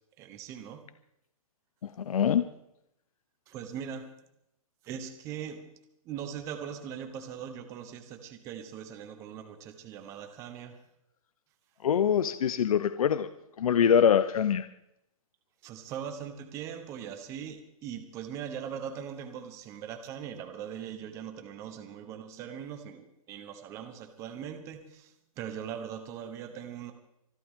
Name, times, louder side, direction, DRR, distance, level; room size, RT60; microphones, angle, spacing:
voice 1, 0.2-0.9 3.5-4.1 4.8-5.7 6.0-10.8 15.6-26.9, right 8 dB, 15° right, 6 dB, 1.0 m, -40 dB
voice 2, 1.8-2.5 11.8-13.3 13.6-14.7, left 8 dB, 70° left, 12 dB, 0.9 m, -24 dB
25.5 x 12.0 x 3.7 m, 0.81 s
hypercardioid pair, 170°, 19 cm